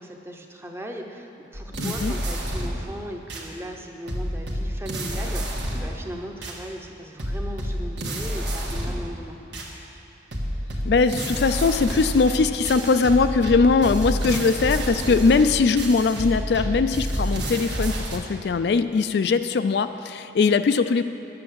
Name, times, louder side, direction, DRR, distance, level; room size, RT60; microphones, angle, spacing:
voice 1, 0.0-9.4 14.3-14.5 15.1-15.2, equal, 15° right, 2 dB, 0.7 m, -38 dB
sound 1, 1.5-2.9 3.3-3.5 4.1-6.0 6.4-6.6 7.2-9.1 9.5-9.7 10.3-18.2, equal, 70° right, 1.6 m, -29 dB
voice 2, 1.8-2.1 10.8-21.0, left 4 dB, 60° left, 10 dB, 0.4 m, -21 dB
10.5 x 7.7 x 7.5 m, 3.0 s
head